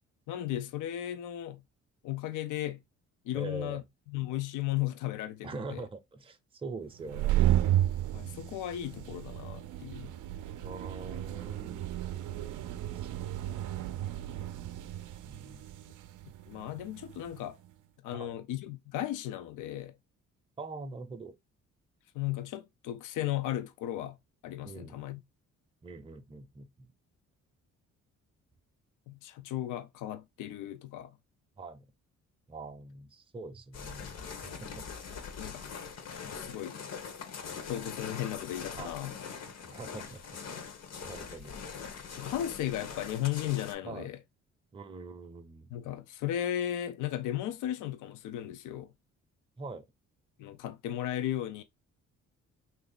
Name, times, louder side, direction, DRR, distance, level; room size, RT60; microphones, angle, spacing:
voice 1, 0.3-1.6 2.0-2.8 3.2-3.8 4.1-5.8 8.1-10.1 16.5-17.6 18.0-20.0 22.1-24.2 24.4-25.2 29.1-31.2 35.4-35.9 36.3-36.8 37.7-39.2 42.2-44.2 45.7-48.9 50.4-51.6, left 12 dB, 85° left, 0.5 m, -35 dB
voice 2, 3.3-3.8 5.4-7.5 10.6-11.9 12.7-13.1 15.2-15.9 18.1-18.4 20.6-21.3 24.6-25.0 25.8-26.9 31.6-31.9 32.5-34.2 34.4-34.9 35.1-35.2 38.8-39.0 39.6-40.2 41.0-41.5 43.8-44.1 44.7-45.7 49.6-49.9, right 3 dB, 20° right, 0.6 m, -44 dB
sound 1, 7.0-17.4, right 12 dB, 80° right, 0.5 m, -33 dB
sound 2, 33.7-43.7, left 6 dB, 60° left, 0.9 m, -42 dB
3.0 x 2.7 x 3.8 m
cardioid pair, 90°, 30 cm